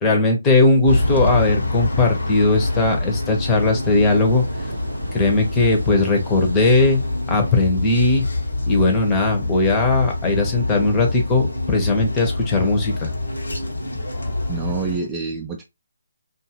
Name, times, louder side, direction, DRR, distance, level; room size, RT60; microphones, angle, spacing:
voice 1, 0.0-4.4 5.1-7.0 7.3-8.2 8.7-13.1, left 2 dB, 15° left, 0.8 m, -18 dB
sound 1, 0.7-15.1, right 2 dB, 80° right, 0.5 m, -36 dB
sound 2, 0.9-15.0, left 2 dB, 80° left, 1.0 m, -26 dB
voice 2, 14.5-15.6, right 5 dB, 15° right, 0.4 m, -27 dB
2.6 x 2.4 x 2.8 m
figure-of-eight pair, 150°, 0 cm